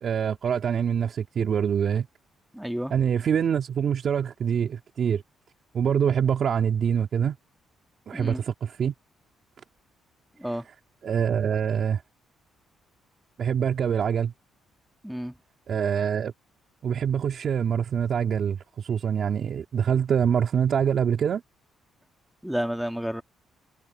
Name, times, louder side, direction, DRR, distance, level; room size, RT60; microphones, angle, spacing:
voice 1, 0.0-2.1 2.9-5.2 5.7-7.4 8.1-8.9 11.0-12.0 13.4-14.3 15.7-16.3 16.8-21.4, right 8 dB, 55° right, 2.6 m, -25 dB
voice 2, 2.5-2.9 8.1-8.4 10.4-10.7 15.0-15.4 22.4-23.2, equal, 5° right, 1.9 m, -30 dB
cardioid pair, 90°, 0 cm